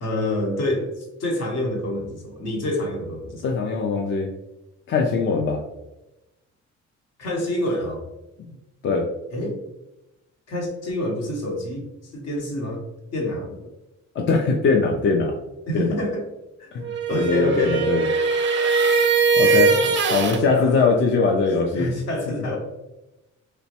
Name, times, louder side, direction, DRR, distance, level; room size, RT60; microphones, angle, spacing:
voice 1, 0.0-3.6 7.2-8.0 9.3-9.6 10.5-12.8 13.1-13.5 15.7-16.3 16.6-16.7 17.1-17.9 19.6-19.8 20.5-21.0 21.7-22.6, left 1 dB, 60° left, 1 dB, 0.9 m, -27 dB
voice 2, 3.4-4.3 4.9-5.6 8.8-9.0 14.2-15.3 15.7-15.9 16.7-18.0 19.4-19.7 20.1-21.9, left 4 dB, 40° left, 1 dB, 0.4 m, -21 dB
sound 1, 16.8-20.4, right 4 dB, 40° right, 0.4 m, -20 dB
3.0 x 2.1 x 2.8 m, 0.97 s
cardioid pair, 90°, 30 cm